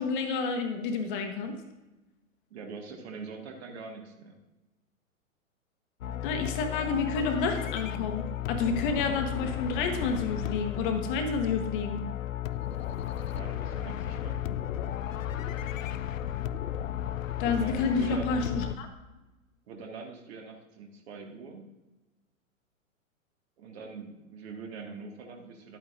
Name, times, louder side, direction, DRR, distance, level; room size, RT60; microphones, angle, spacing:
voice 1, 0.0-1.6 6.2-12.0 17.4-18.9, left 4 dB, 40° left, 5 dB, 1.2 m, -29 dB
voice 2, 2.5-4.4 13.1-14.4 17.4-18.6 19.7-21.7 23.6-25.8, right 4 dB, 50° right, 2 dB, 1.8 m, -43 dB
sound 1, 6.0-18.8, left 11 dB, 70° left, 0.5 m, -34 dB
11.0 x 8.7 x 2.5 m, 1.1 s
figure-of-eight pair, 115°, 41 cm